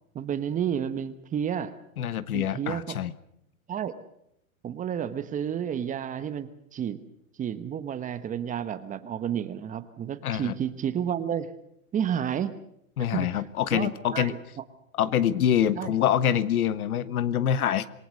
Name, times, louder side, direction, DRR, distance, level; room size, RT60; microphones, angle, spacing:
voice 1, 0.1-1.7 2.3-3.0 3.7-4.0 4.6-7.0 7.4-11.5 11.9-12.5 13.1-13.3 13.7-14.4 15.7-15.9, right 9 dB, 20° right, 12 dB, 1.1 m, -31 dB
voice 2, 2.0-3.1 10.2-10.5 13.0-14.3 15.0-17.9, left 9 dB, 85° left, 16 dB, 1.4 m, -25 dB
27.5 x 18.5 x 6.5 m, 0.75 s
hypercardioid pair, 140°, 43 cm